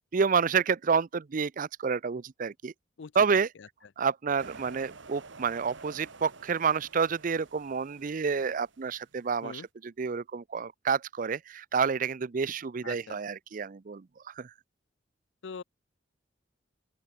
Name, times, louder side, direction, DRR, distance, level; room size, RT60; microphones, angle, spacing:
voice 1, 0.1-2.7 3.2-3.5 4.0-14.0 14.4-14.5, right 5 dB, 45° right, 0.5 m, -29 dB
voice 2, 3.0-3.7 9.4-9.7 12.8-13.2 15.4-15.6, left 5 dB, 70° left, 0.5 m, -43 dB
sound 1, 4.4-9.4, right 4 dB, 75° right, 2.0 m, -50 dB
open air
head